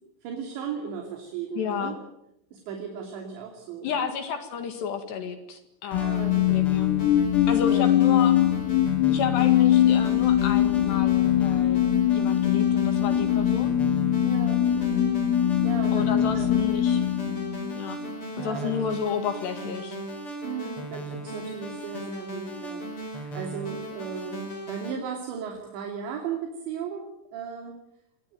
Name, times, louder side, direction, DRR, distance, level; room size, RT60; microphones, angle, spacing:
voice 1, 0.0-2.0 2.5-4.1 6.0-6.7 7.6-8.0 14.2-15.2 15.6-16.5 18.4-18.7 20.4-27.8, right 7 dB, 65° right, 3 dB, 4.9 m, -36 dB
voice 2, 1.6-2.0 3.8-6.9 7.5-8.4 9.1-11.8 12.1-13.8 15.9-17.0 17.7-18.0 18.4-20.0, left 7 dB, 65° left, 8 dB, 3.8 m, -31 dB
sound 1, 5.9-18.1, left 11 dB, 85° left, 4.1 m, -22 dB
sound 2, 5.9-24.9, right 1 dB, 25° left, 5.4 m, -37 dB
25.0 x 20.0 x 9.3 m, 0.79 s
omnidirectional pair, 5.8 m